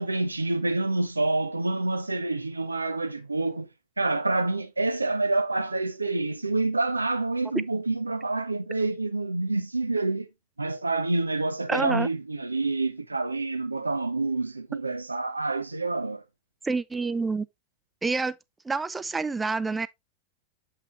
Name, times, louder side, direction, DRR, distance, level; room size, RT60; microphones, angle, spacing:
voice 1, 0.0-3.7 4.0-10.3 10.6-16.2, right 2 dB, 80° right, 0.9 m, -27 dB
voice 2, 11.7-12.1 16.6-17.5 18.0-18.4 18.7-19.9, right 4 dB, 10° right, 0.5 m, -27 dB
7.8 x 5.8 x 3.0 m
figure-of-eight pair, 90°, 0 cm